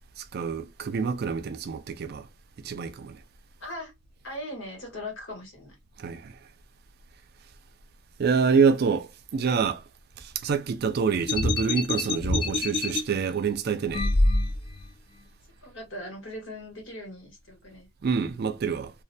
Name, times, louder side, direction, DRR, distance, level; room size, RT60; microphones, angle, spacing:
voice 1, 0.2-2.3 2.6-3.2 6.0-6.3 8.2-9.8 10.2-14.1 18.0-18.9, right 5 dB, 55° right, 0.4 m, -26 dB
voice 2, 3.6-3.9 4.2-5.8 15.6-17.9, left 1 dB, 80° left, 1.3 m, -39 dB
sound 1, 11.3-13.0 13.9-14.8, left 2 dB, 25° left, 0.3 m, -25 dB
2.4 x 2.1 x 2.5 m
head